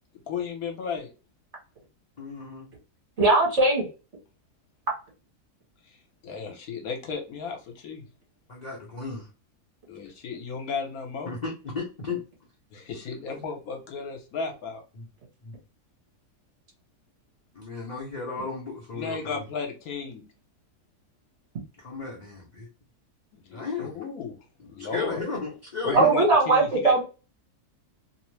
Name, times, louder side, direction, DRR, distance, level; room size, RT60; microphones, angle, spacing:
voice 1, 0.3-1.1 6.2-8.0 9.9-11.3 12.7-14.8 18.9-20.2 23.3-24.4 24.7-25.3 25.8-27.0, left 5 dB, 70° left, 1.2 m, -34 dB
voice 2, 2.2-2.7 8.5-9.3 11.2-12.2 14.9-15.1 15.4-15.6 17.5-19.4 21.8-22.7 23.5-24.0 24.6-26.2, left 4 dB, 40° left, 0.6 m, -34 dB
voice 3, 3.2-3.8 25.9-27.0, right 3 dB, 50° right, 1.4 m, -19 dB
2.8 x 2.0 x 3.1 m
omnidirectional pair, 1.7 m